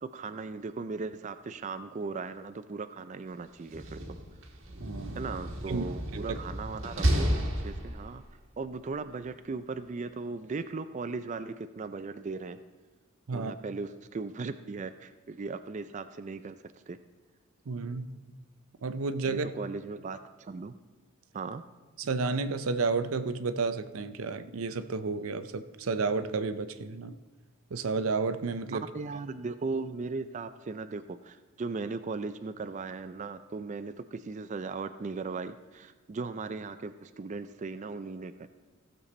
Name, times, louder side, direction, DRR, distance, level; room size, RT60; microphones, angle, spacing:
voice 1, 0.0-4.0 5.1-8.2 8.6-12.6 13.3-17.0 19.2-20.7 21.3-21.6 28.7-38.5, right 4 dB, 35° right, 11 dB, 0.4 m, -37 dB
Slam, 3.6-8.3, equal, 70° right, 1.6 m, -32 dB
voice 2, 4.8-5.3 5.7-5.8 6.1-6.4 13.3-13.5 17.7-18.2 18.8-19.5 22.0-27.1 27.7-28.9, right 4 dB, 85° right, 11 dB, 0.6 m, -31 dB
16.0 x 6.9 x 4.2 m, 1.3 s
head